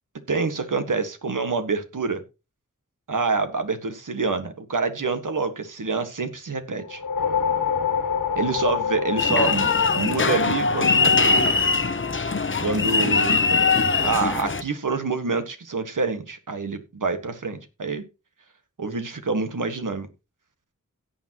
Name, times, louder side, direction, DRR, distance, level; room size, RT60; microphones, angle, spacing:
voice 1, 0.3-2.2 3.1-7.0 8.3-11.6 12.6-13.5 14.0-18.0 18.8-20.1, right 4 dB, 70° right, 1.6 m, -27 dB
sound 1, 6.8-11.4, left 7 dB, 75° left, 1.5 m, -27 dB
sound 2, 9.2-14.6, left 4 dB, 40° left, 0.8 m, -21 dB
17.0 x 7.2 x 3.0 m
wide cardioid pair, 85°, 32 cm